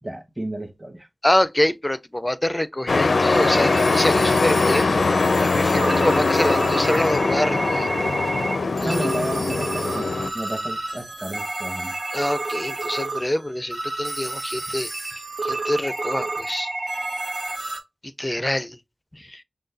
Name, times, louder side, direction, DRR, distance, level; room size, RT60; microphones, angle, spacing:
voice 1, 0.0-1.1 8.8-10.1 10.3-11.9, right 1 dB, 15° right, 1.1 m, -31 dB
voice 2, 1.2-7.9 8.8-9.1 12.1-14.9 15.4-16.7 18.2-18.8 19.3-19.4, left 1 dB, 20° left, 0.4 m, -25 dB
Truck, 2.9-10.3, left 3 dB, 80° left, 0.4 m, -21 dB
sound 1, 3.3-17.8, right 2 dB, 55° right, 1.4 m, -30 dB
6.3 x 2.2 x 2.5 m
wide cardioid pair, 65°, 0 cm